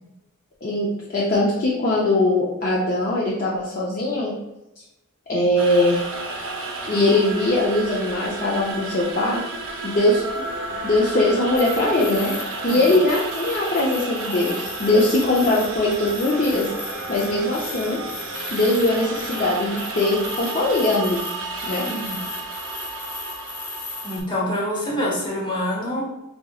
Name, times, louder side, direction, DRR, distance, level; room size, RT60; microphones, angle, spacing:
voice 1, 0.6-4.3 5.3-6.0 6.9-9.4 9.8-10.4 10.8-12.3 12.6-16.7 17.1-18.0 18.5-21.2 21.7-21.8, left 2 dB, 40° left, -5 dB, 0.5 m, -21 dB
sound 1, 5.6-24.2, right 2 dB, 60° right, 0.6 m, -32 dB
sound 2, 11.6-24.2, left 5 dB, 90° left, 1.0 m, -37 dB
voice 2, 21.8-22.2 24.0-26.0, left 1 dB, 20° left, -5 dB, 1.1 m, -26 dB
4.4 x 2.7 x 2.3 m, 0.94 s
head